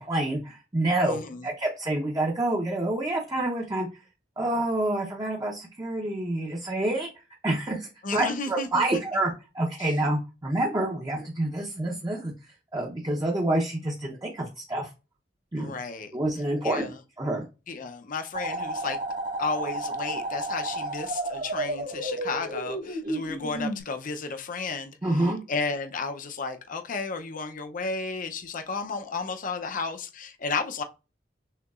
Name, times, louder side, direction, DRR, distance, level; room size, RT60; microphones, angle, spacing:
voice 1, 0.0-3.9 4.4-7.1 7.4-12.3 12.7-14.9 15.5-15.8 16.1-16.8 17.2-17.4 25.0-25.4, right 1 dB, 20° right, 0.7 m, -27 dB
voice 2, 1.0-1.5 8.0-9.0 15.6-16.1 16.6-17.0 17.7-19.0 19.4-30.8, left 4 dB, 50° left, 0.6 m, -33 dB
sound 1, 18.3-23.8, right 1 dB, 50° right, 1.7 m, -32 dB
6.5 x 2.8 x 2.4 m
head